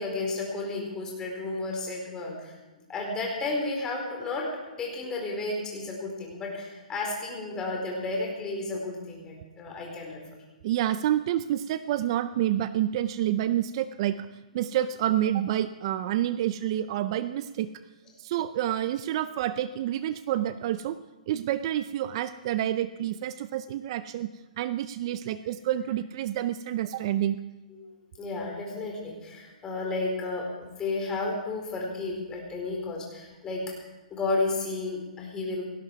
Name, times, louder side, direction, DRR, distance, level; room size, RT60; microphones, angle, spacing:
voice 1, 0.0-2.5 2.9-4.5 4.8-10.2 27.8-27.9 28.2-33.6 34.1-35.6, left 3 dB, 15° left, -1 dB, 4.4 m, -32 dB
voice 2, 10.6-14.3 14.5-17.7 18.2-21.0 21.3-24.3 24.6-27.4, right 12 dB, 40° right, 13 dB, 0.5 m, -28 dB
18.0 x 16.0 x 4.7 m, 1.2 s
hypercardioid pair, 155°, 4 cm